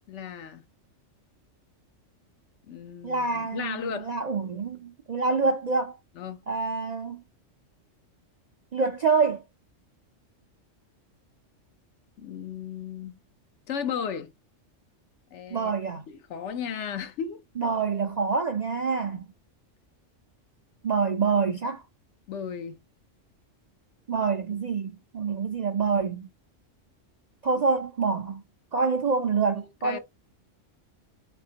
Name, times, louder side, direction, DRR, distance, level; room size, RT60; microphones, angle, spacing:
voice 1, 0.1-0.6 2.7-4.1 6.2-6.4 12.2-13.2 13.7-14.3 15.3-15.7 16.1-17.4 22.3-22.8 29.8-30.0, left 7 dB, 70° left, 0.9 m, -35 dB
voice 2, 3.0-6.0 6.5-7.2 8.7-9.4 15.5-16.0 17.6-19.2 20.8-21.8 24.1-26.3 27.4-28.4 28.7-30.0, right 4 dB, 55° right, 0.5 m, -26 dB
4.2 x 4.2 x 2.8 m
omnidirectional pair, 1.3 m